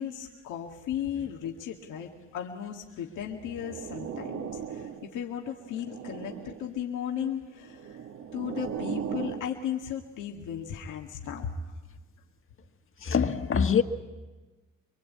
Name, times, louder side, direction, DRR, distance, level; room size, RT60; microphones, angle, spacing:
voice 1, 0.0-8.0 8.3-11.5, left 8 dB, 85° left, 2.0 m, -35 dB
sound 1, 3.4-5.2 5.6-6.7 7.6-9.5, right 7 dB, 65° right, 1.6 m, -38 dB
voice 2, 13.0-13.8, left 6 dB, 45° left, 1.7 m, -24 dB
25.0 x 23.5 x 8.5 m
cardioid pair, 90°, 30 cm